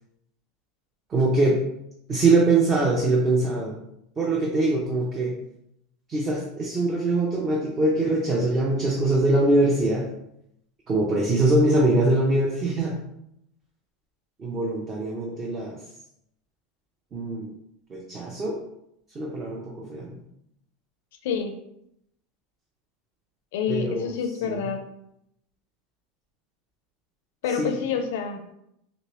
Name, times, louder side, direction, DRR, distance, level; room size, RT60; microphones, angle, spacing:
voice 1, 1.1-1.6 2.1-3.8 4.2-5.4 6.1-10.1 10.9-13.0 14.4-15.8 17.1-17.5 17.9-18.6 19.2-20.1 23.7-24.1 24.5-24.6 27.6-27.7, right 2 dB, 20° right, -1 dB, 0.4 m, -23 dB
voice 2, 21.2-21.6 23.5-24.8 27.4-28.5, left 7 dB, 70° left, 6 dB, 0.4 m, -28 dB
3.1 x 3.0 x 2.9 m, 0.79 s
supercardioid pair, 165°, 0 cm